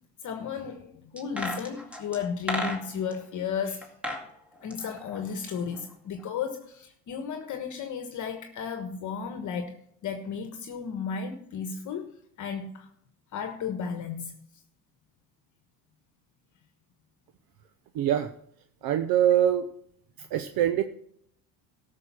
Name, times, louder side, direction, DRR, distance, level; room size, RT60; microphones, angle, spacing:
voice 1, 0.2-3.9 4.6-9.8 10.0-12.1 12.4-12.9 13.3-14.3, left 6 dB, 45° left, 6 dB, 1.3 m, -34 dB
sound 1, 1.2-3.2 3.8-4.3 4.6-5.9 6.2-6.3, left 1 dB, 5° right, 2.1 m, -34 dB
voice 2, 17.9-18.3 18.8-19.7 20.2-20.8, right 10 dB, 55° right, 10 dB, 0.8 m, -24 dB
13.0 x 6.5 x 6.1 m, 0.68 s
supercardioid pair, 110°, 42 cm